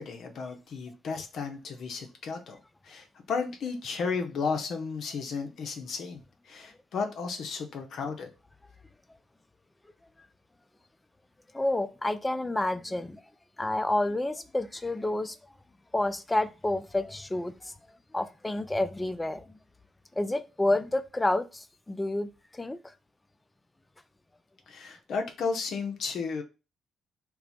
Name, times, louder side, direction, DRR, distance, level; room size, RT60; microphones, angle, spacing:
voice 1, 0.0-2.6 2.8-8.3 24.7-26.4, left 5 dB, 65° left, 0.7 m, -34 dB
voice 2, 11.5-13.2 13.6-15.3 15.9-17.7 18.1-19.4 20.2-22.3 22.5-22.8, left 1 dB, 15° left, 0.4 m, -29 dB
4.4 x 2.1 x 4.0 m
cardioid pair, 90°, 0 cm